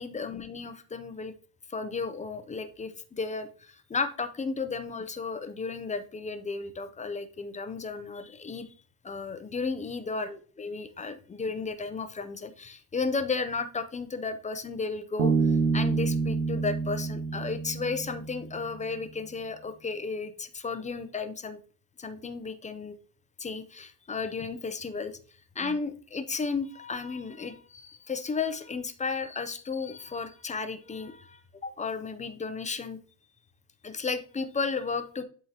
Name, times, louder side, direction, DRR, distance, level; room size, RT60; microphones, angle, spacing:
voice 1, 0.0-1.3 1.7-8.7 9.0-21.6 22.0-23.0 23.4-25.2 25.6-33.0 33.8-35.2, left 4 dB, 15° left, 9 dB, 0.5 m, -34 dB
Bass guitar, 15.2-18.7, right 4 dB, 90° right, 1.3 m, -27 dB
11.0 x 3.7 x 2.8 m, 0.42 s
cardioid pair, 130°, 47 cm